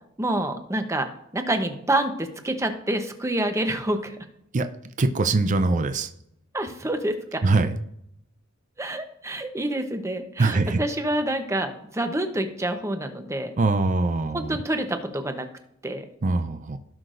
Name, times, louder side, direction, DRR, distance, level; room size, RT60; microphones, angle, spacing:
voice 1, 0.2-1.1 1.3-4.2 6.5-7.4 8.8-13.5 14.3-15.5 15.8-16.0, right 1 dB, 15° right, 6 dB, 0.8 m, -27 dB
voice 2, 5.0-6.1 7.4-7.8 10.4-10.8 13.6-14.6 16.2-16.8, right 3 dB, 40° right, 9 dB, 0.5 m, -22 dB
17.0 x 5.8 x 2.6 m, 0.76 s
head